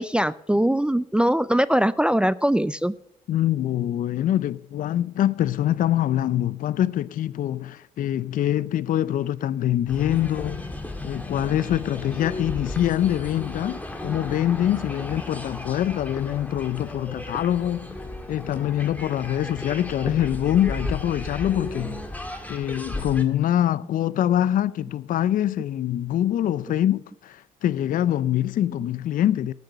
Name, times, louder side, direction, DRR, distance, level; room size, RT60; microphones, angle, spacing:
voice 1, 0.0-2.9, right 1 dB, 5° right, 0.4 m, -21 dB
voice 2, 3.3-10.6 11.0-17.9 18.3-22.0 22.5-29.5, left 11 dB, 60° left, 0.5 m, -24 dB
sound 1, 9.9-23.2, left 1 dB, 10° left, 1.8 m, -34 dB
12.5 x 6.7 x 7.8 m
supercardioid pair, 65°, 15 cm